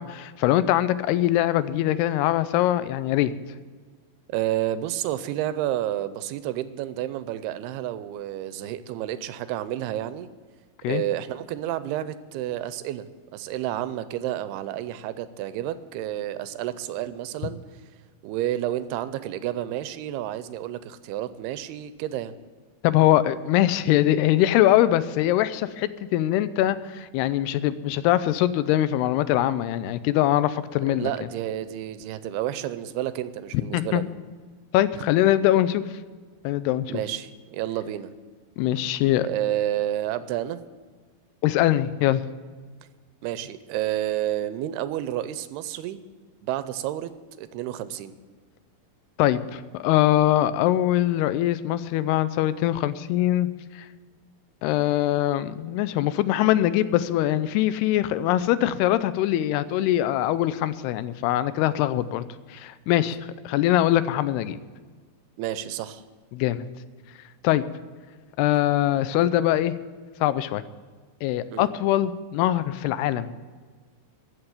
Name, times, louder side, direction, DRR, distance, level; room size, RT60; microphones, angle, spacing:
voice 1, 0.0-3.3 10.8-11.0 22.8-31.1 33.7-34.0 34.7-35.8 36.4-37.0 38.6-39.3 41.4-42.2 49.2-53.5 53.7-53.9 54.6-62.2 62.5-63.2 63.5-64.6 66.3-66.6 67.4-67.6 68.4-69.7 70.2-70.6 71.2-73.3, left 13 dB, 85° left, 14 dB, 2.6 m, -22 dB
voice 2, 4.3-10.3 10.9-13.1 13.3-17.6 18.2-22.3 30.9-34.1 36.9-38.1 39.2-40.6 43.2-46.0 46.4-48.2 65.4-66.0 71.5-71.7, right 12 dB, 85° right, 13 dB, 2.6 m, -30 dB
14.5 x 6.8 x 9.4 m, 1.5 s
omnidirectional pair, 4.6 m